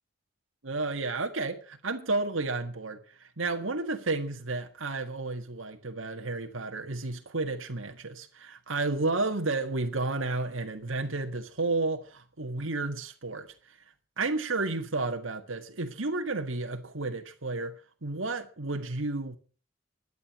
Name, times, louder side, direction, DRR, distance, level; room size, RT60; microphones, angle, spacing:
voice 1, 0.6-13.5 14.2-19.4, right 3 dB, 85° right, 1.8 m, -32 dB
12.5 x 9.6 x 8.6 m
head